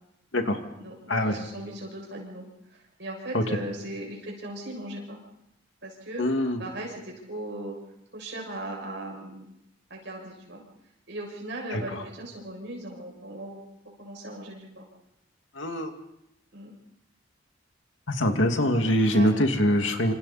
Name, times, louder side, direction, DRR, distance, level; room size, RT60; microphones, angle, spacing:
voice 1, 0.8-2.5 2.7-5.2 5.8-7.8 8.1-9.5 9.9-10.6 11.1-13.6 14.0-14.9 16.5-16.7 19.1-19.3, right 1 dB, 65° right, -1 dB, 7.2 m, -38 dB
voice 2, 6.2-6.6 11.7-11.8 15.6-15.9 18.1-20.1, equal, 80° left, 5 dB, 2.3 m, -23 dB
28.0 x 26.5 x 4.3 m, 0.81 s
head